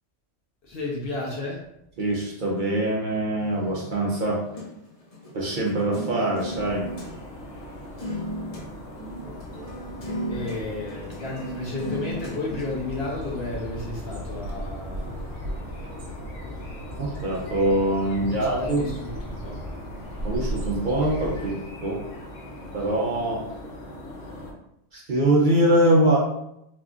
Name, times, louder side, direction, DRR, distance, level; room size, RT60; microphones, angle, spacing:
voice 1, 0.6-1.6 10.3-15.2 18.3-19.6, left 2 dB, 60° left, -3 dB, 0.9 m, -32 dB
voice 2, 2.0-4.4 5.3-6.9 17.0-18.8 20.2-22.0 22.7-23.4 24.9-26.2, right 1 dB, 50° right, -3 dB, 0.7 m, -23 dB
sound 1, 3.4-7.1 7.6-7.7 8.0-8.7 9.0-12.8, right 1 dB, 35° left, 0.7 m, -36 dB
sound 2, 6.5-24.5, left 1 dB, 90° left, 1.0 m, -40 dB
Bird, 12.1-21.8, equal, 75° right, 1.1 m, -37 dB
3.5 x 2.5 x 2.4 m, 0.80 s
omnidirectional pair, 1.3 m